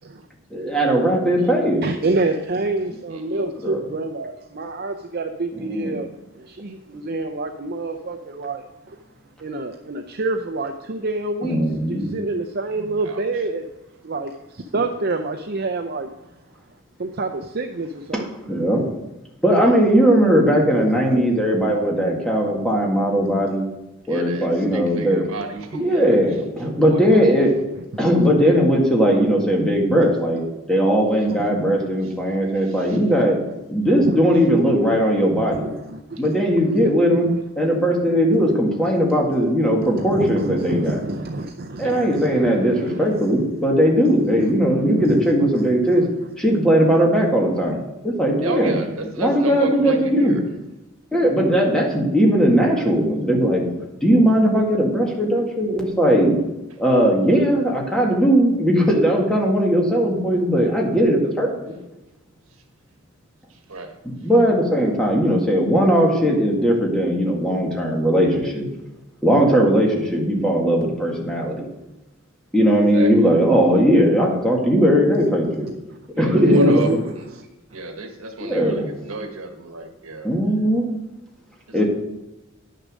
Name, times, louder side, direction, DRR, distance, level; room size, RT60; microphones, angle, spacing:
voice 1, 0.5-1.8 3.4-3.9 5.5-6.0 11.4-12.2 18.1-18.8 19.4-23.6 24.1-25.3 25.8-27.5 28.0-30.4 30.7-33.4 33.7-35.8 36.2-37.3 37.6-41.0 41.8-46.0 46.4-48.8 49.2-50.4 51.1-53.7 54.0-56.4 56.8-61.7 64.0-68.7 69.2-71.7 72.5-75.7 76.2-77.0 78.4-78.9 80.2-80.9 81.7-81.8, equal, 5° left, -2 dB, 1.9 m, -18 dB
voice 2, 1.8-9.0 9.4-11.6 11.9-13.6 14.0-16.1 17.0-18.3 20.9-21.0 34.0-34.2 35.4-36.0 39.8-43.3 45.4-45.5 76.3-77.0 77.4-77.5, right 2 dB, 50° right, 5 dB, 0.5 m, -27 dB
voice 3, 3.1-3.4 13.0-13.2 19.5-19.7 24.1-26.2 26.6-27.4 31.1-31.3 32.5-33.0 41.8-42.1 48.4-50.4 63.7-63.9 72.9-73.1 76.1-77.3 77.7-80.3 81.7-81.8, right 2 dB, 80° right, 5 dB, 1.5 m, -31 dB
10.0 x 6.7 x 6.2 m, 0.98 s
head